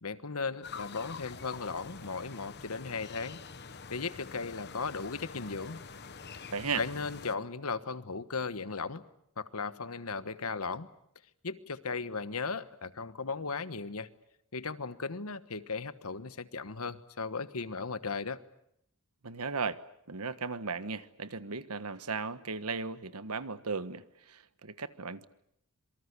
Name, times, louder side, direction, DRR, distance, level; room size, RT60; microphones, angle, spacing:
voice 1, 0.0-3.4 3.9-5.8 6.7-9.0 9.4-10.9 11.4-14.1 14.5-18.4, left 4 dB, 75° left, 13 dB, 1.3 m, -36 dB
sound 1, 0.6-7.3, left 5 dB, 50° left, 1.3 m, -46 dB
voice 2, 6.5-6.8 19.2-19.8 20.1-25.2, right 4 dB, 85° right, 13 dB, 1.3 m, -36 dB
26.5 x 24.0 x 8.3 m, 0.76 s
head